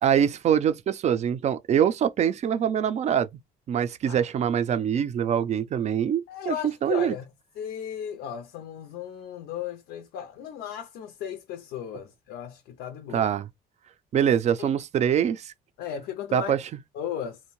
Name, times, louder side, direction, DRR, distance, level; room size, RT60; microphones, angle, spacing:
voice 1, 0.0-3.3 3.7-6.6 6.8-7.1 13.1-13.5 14.1-15.5 16.3-16.6, right 9 dB, 40° right, 0.4 m, -24 dB
voice 2, 6.3-13.3 14.6-14.7 15.8-16.5 16.9-17.4, left 9 dB, 85° left, 0.5 m, -36 dB
2.6 x 2.1 x 3.0 m
cardioid pair, 110°, 17 cm